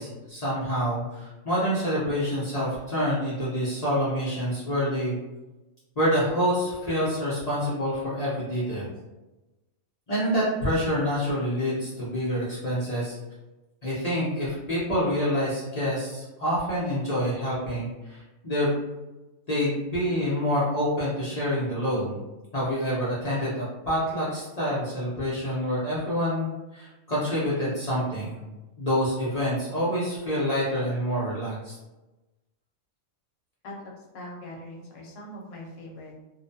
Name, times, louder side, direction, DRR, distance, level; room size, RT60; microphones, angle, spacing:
voice 1, 0.0-5.1 6.0-8.9 10.1-13.2 13.8-18.8 19.5-22.1 22.5-26.5 26.7-28.4 28.8-31.7, equal, 45° left, -9 dB, 0.5 m, -27 dB
voice 2, 33.6-36.1, left 1 dB, 70° left, -2 dB, 0.9 m, -42 dB
2.4 x 2.2 x 2.6 m, 1.1 s
omnidirectional pair, 1.4 m